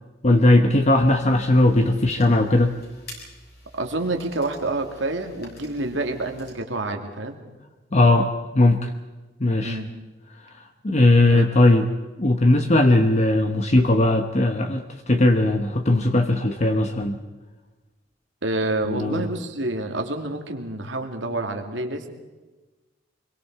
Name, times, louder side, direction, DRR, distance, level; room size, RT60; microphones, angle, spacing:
voice 1, 0.2-2.7 7.9-8.3 8.5-8.9 9.4-9.8 10.8-11.8 12.2-17.2 18.9-19.2, left 2 dB, 40° left, 6 dB, 1.0 m, -18 dB
sound 1, 1.1-6.5, left 2 dB, 60° left, 7.1 m, -48 dB
voice 2, 3.8-7.4 9.6-9.9 11.3-11.5 18.4-22.1, right 2 dB, 90° right, 4 dB, 2.6 m, -28 dB
25.0 x 23.0 x 4.8 m, 1.2 s
head